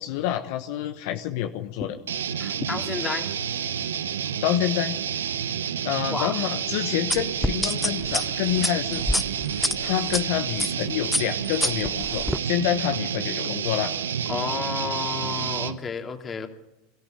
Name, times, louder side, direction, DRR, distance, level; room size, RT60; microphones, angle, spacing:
voice 1, 0.0-2.0 4.4-5.0 5.8-9.0 9.5-13.9, left 12 dB, 65° left, 7 dB, 1.2 m, -27 dB
sound 1, 2.1-15.8, right 8 dB, 90° right, 1.0 m, -29 dB
voice 2, 2.4-3.3 6.1-6.3 14.3-16.5, left 5 dB, 25° left, 4 dB, 2.8 m, -31 dB
sound 2, 7.1-10.2 10.6-10.8 11.1-12.4, left 1 dB, 5° left, 0.7 m, -26 dB
23.0 x 13.5 x 9.2 m, 0.94 s
hypercardioid pair, 100°, 0 cm